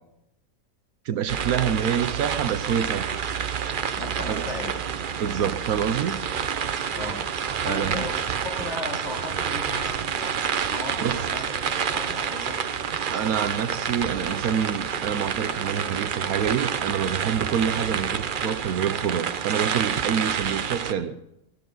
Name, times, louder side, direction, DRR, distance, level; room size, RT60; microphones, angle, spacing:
voice 1, 1.0-3.2 4.3-4.5 5.2-6.2 7.6-8.1 11.0-11.3 13.1-21.1, right 8 dB, 70° right, 1.2 m, -27 dB
sound 1, 1.3-20.9, right 7 dB, 50° right, 0.6 m, -28 dB
sound 2, 2.2-17.9, equal, 15° left, 3.0 m, -50 dB
voice 2, 4.0-4.9 6.9-7.2 7.6-8.2 8.4-12.6, left 1 dB, 45° left, 3.5 m, -36 dB
20.5 x 13.5 x 3.9 m
omnidirectional pair, 1.6 m